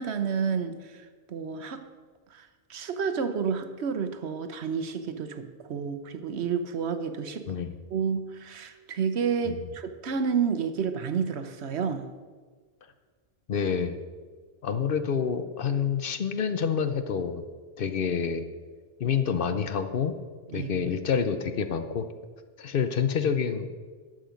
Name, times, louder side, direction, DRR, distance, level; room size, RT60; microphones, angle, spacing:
voice 1, 0.0-1.8 2.3-7.5 7.9-12.1 20.5-20.7, right 6 dB, 85° right, 9 dB, 1.1 m, -30 dB
voice 2, 7.5-7.8 9.4-9.6 13.5-14.0 14.6-17.4 17.8-18.5 19.0-20.2 20.5-22.1 22.6-23.7, left 6 dB, 60° left, 9 dB, 0.8 m, -27 dB
11.5 x 7.6 x 5.2 m, 1.5 s
omnidirectional pair, 1.1 m